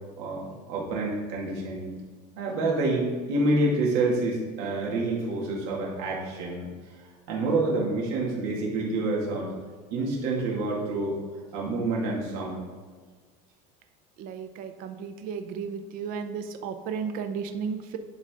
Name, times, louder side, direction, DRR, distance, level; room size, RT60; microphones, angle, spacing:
voice 1, 0.2-1.9 2.4-6.7 7.3-9.5 9.9-11.1 11.5-12.6, right 2 dB, 70° right, -3 dB, 2.3 m, -27 dB
voice 2, 14.2-18.0, right 6 dB, 50° right, 8 dB, 0.7 m, -34 dB
11.0 x 4.1 x 3.8 m, 1.5 s
cardioid pair, 145°, 18 cm